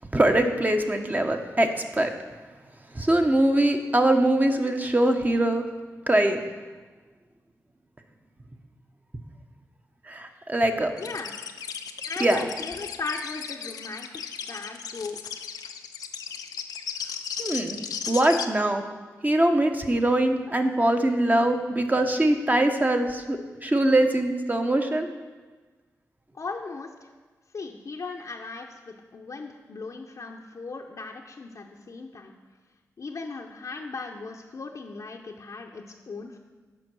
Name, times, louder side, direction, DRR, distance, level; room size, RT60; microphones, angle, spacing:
voice 1, 0.1-2.1 2.9-5.6 6.1-6.4 10.1-10.9 12.2-12.5 17.4-17.8 18.1-18.8 19.2-25.1, right 1 dB, 25° right, 5 dB, 1.0 m, -22 dB
sound 1, 11.0-18.5, left 7 dB, 90° left, 0.4 m, -35 dB
voice 2, 11.0-11.3 12.1-14.1 14.4-15.2 26.3-27.1 27.5-32.3 33.0-36.4, left 4 dB, 60° left, 0 dB, 0.7 m, -37 dB
7.7 x 5.3 x 6.1 m, 1.3 s
supercardioid pair, 40°, 6 cm